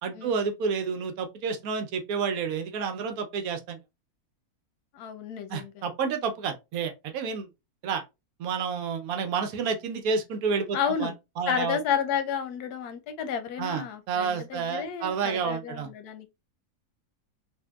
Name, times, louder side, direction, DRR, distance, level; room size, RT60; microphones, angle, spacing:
voice 1, 0.0-3.8 5.5-7.5 7.8-8.0 8.4-11.8 13.6-15.9, right 5 dB, 75° right, 1.1 m, -30 dB
voice 2, 4.9-5.7 10.7-11.1 11.5-16.3, left 7 dB, 85° left, 1.2 m, -31 dB
3.6 x 2.5 x 2.2 m
omnidirectional pair, 1.6 m